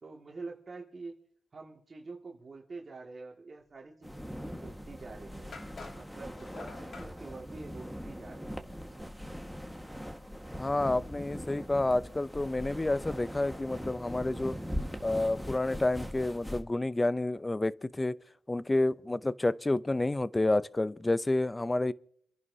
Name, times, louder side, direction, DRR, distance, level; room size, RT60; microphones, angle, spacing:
voice 1, 0.0-1.2 1.5-5.5 5.9-9.1, right 3 dB, 40° right, 2.1 m, -47 dB
sound 1, 4.0-16.6, equal, 5° left, 1.6 m, -41 dB
sound 2, 5.5-7.1, left 4 dB, 55° left, 1.7 m, -47 dB
voice 2, 10.6-14.6 15.0-18.2 18.5-21.9, left 2 dB, 20° left, 0.6 m, -29 dB
29.0 x 11.0 x 2.8 m
cardioid pair, 65°, 0 cm